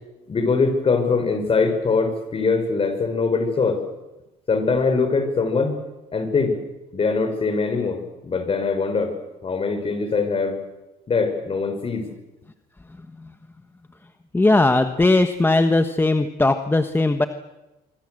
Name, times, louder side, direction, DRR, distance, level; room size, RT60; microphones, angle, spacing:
voice 1, 0.3-3.8 4.5-5.8 6.1-6.6 6.9-9.1 9.4-10.6 11.1-12.1, left 4 dB, 35° left, 8 dB, 5.4 m, -22 dB
voice 2, 14.3-17.3, left 2 dB, 15° left, 8 dB, 1.2 m, -18 dB
25.5 x 24.0 x 7.8 m, 1.0 s
cardioid pair, 110°, 17 cm